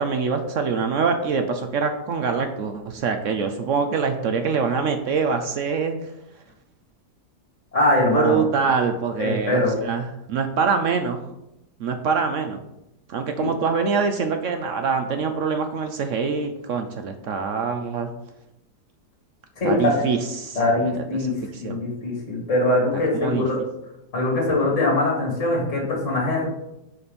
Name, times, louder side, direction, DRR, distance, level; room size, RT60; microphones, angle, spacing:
voice 1, 0.0-5.9 8.1-11.2 11.8-12.6 13.1-18.1 19.6-20.6 21.5-21.8 23.1-23.4, right 5 dB, 65° right, 6 dB, 0.8 m, -24 dB
voice 2, 7.7-8.4 9.2-9.7 13.4-13.5 19.6-20.0 20.6-21.3 21.6-23.6 24.1-26.4, left 2 dB, 45° left, -4 dB, 2.2 m, -22 dB
6.8 x 4.2 x 5.2 m, 0.87 s
omnidirectional pair, 1.8 m